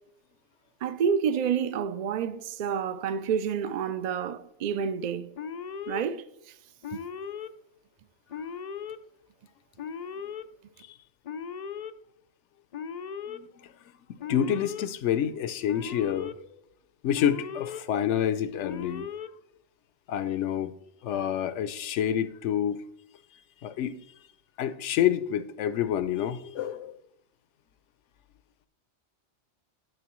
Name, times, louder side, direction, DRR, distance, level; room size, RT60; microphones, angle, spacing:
voice 1, 0.8-5.3 5.9-6.5 6.9-7.0, right 7 dB, 55° right, 0.5 m, -29 dB
Alarm, 5.4-6.0 6.8-7.5 8.3-9.0 9.8-10.4 11.2-11.9 12.7-13.4 14.2-14.9 15.7-16.3 17.1-17.8 18.6-19.3, left 7 dB, 60° left, 0.4 m, -37 dB
voice 2, 13.3-13.7 14.1-16.3 17.0-19.1 20.1-20.7 21.0-22.8 23.6-23.9 24.6-26.9, left 10 dB, 80° left, 0.9 m, -28 dB
10.5 x 6.7 x 3.0 m
omnidirectional pair, 1.2 m